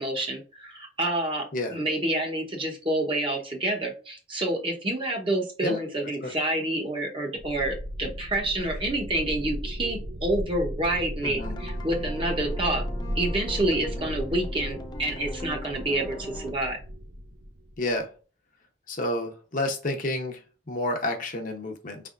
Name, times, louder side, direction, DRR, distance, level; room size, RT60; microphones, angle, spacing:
voice 1, 0.0-12.8 13.1-16.8, right 1 dB, 30° right, 0 dB, 1.0 m, -28 dB
sound 1, 7.4-18.0, equal, 60° right, 0.6 m, -35 dB
voice 2, 11.2-11.6 17.8-18.1 18.9-20.4 20.7-22.0, left 1 dB, 50° left, 3 dB, 0.9 m, -30 dB
sound 2, 11.4-16.5, left 1 dB, 25° left, 0.5 m, -42 dB
5.0 x 3.4 x 2.5 m, 0.36 s
head